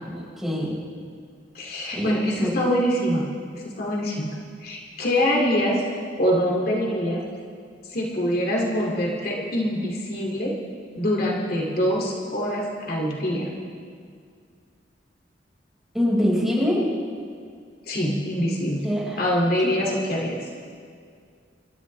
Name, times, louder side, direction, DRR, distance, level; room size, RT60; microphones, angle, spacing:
voice 1, 0.1-0.8 1.9-2.7 15.9-16.8 18.8-19.2 19.6-19.7, equal, ahead, -6 dB, 5.3 m, -24 dB
voice 2, 1.5-3.3 3.5-4.3 4.6-5.8 6.2-7.2 7.9-10.5 11.0-13.5 17.9-18.8 19.2-20.4, equal, 60° left, -2 dB, 2.6 m, -24 dB
27.5 x 14.0 x 3.4 m, 2.1 s
head